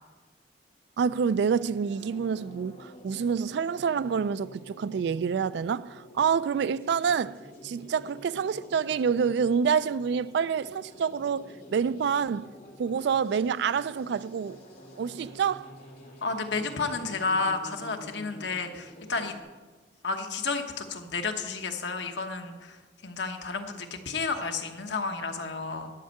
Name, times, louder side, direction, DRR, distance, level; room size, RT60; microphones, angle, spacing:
voice 1, 1.0-7.4 7.6-12.5 12.8-14.6 15.0-15.7, right 6 dB, 70° right, 0.3 m, -27 dB
sound 1, 1.8-19.4, left 1 dB, 55° left, 2.7 m, -48 dB
voice 2, 16.2-19.4 20.0-25.9, left 4 dB, 80° left, 1.1 m, -31 dB
11.5 x 5.4 x 7.8 m
head